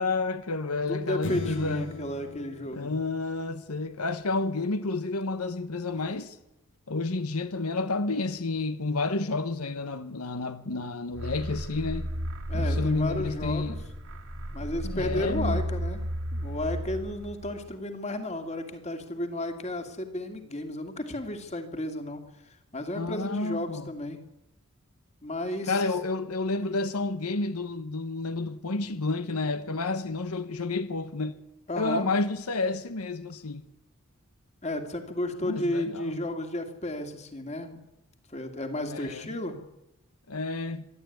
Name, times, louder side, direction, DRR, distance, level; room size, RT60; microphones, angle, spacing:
voice 1, 0.0-1.9 2.7-6.4 6.9-12.1 12.5-13.8 14.8-15.6 22.9-23.9 25.7-31.4 31.8-33.7 35.4-36.3 38.9-39.2 40.3-40.9, left 3 dB, 85° left, 1.1 m, -30 dB
voice 2, 0.9-3.0 12.5-13.8 14.5-16.0 16.3-24.2 25.2-25.7 31.7-32.1 34.6-37.8 38.3-39.6, left 1 dB, 30° left, 2.4 m, -33 dB
sound 1, 1.2-3.9, left 2 dB, 60° left, 1.5 m, -39 dB
sound 2, 11.1-17.7, equal, 70° right, 2.2 m, -33 dB
25.0 x 11.5 x 9.4 m
head